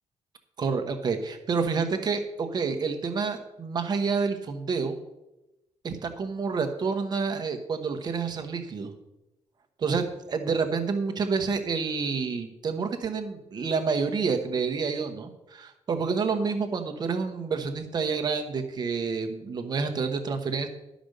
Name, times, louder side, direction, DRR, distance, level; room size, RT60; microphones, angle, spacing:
voice 1, 0.6-4.9 5.8-8.9 9.8-20.7, right 5 dB, 35° right, 7 dB, 1.1 m, -28 dB
12.0 x 5.1 x 6.6 m, 0.95 s
wide cardioid pair, 180°, 11 cm